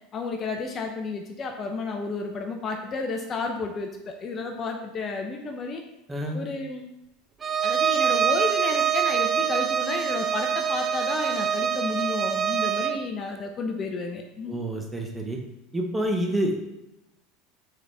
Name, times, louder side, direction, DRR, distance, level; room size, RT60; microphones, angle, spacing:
voice 1, 0.1-5.8 6.3-6.9 7.6-14.7, left 4 dB, 35° left, 3 dB, 0.8 m, -32 dB
voice 2, 6.1-6.4 14.5-15.4 15.7-16.6, right 1 dB, 10° right, 2 dB, 1.3 m, -28 dB
Bowed string instrument, 7.4-13.0, right 8 dB, 30° right, 0.4 m, -25 dB
7.2 x 4.2 x 3.4 m, 0.90 s
hypercardioid pair, 95°, 0 cm